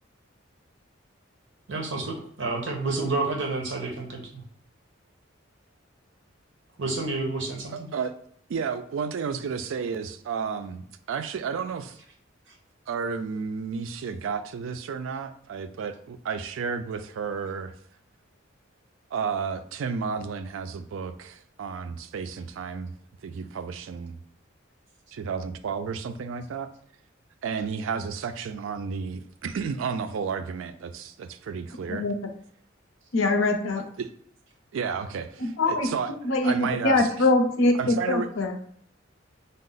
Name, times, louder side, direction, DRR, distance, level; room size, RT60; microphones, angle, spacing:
voice 1, 1.7-4.4 6.8-7.9, right 3 dB, 60° right, 2 dB, 0.8 m, -29 dB
voice 2, 7.7-8.1 8.5-12.0 12.9-17.7 19.1-22.9 23.2-24.2 25.1-26.7 27.4-32.1 34.0-34.1 34.7-36.1 36.4-37.1 37.8-38.3, right 6 dB, 75° right, 10 dB, 0.3 m, -32 dB
voice 3, 33.1-33.8 35.4-35.9 36.2-38.5, left 2 dB, 80° left, 6 dB, 0.6 m, -23 dB
5.3 x 2.0 x 3.8 m, 0.62 s
head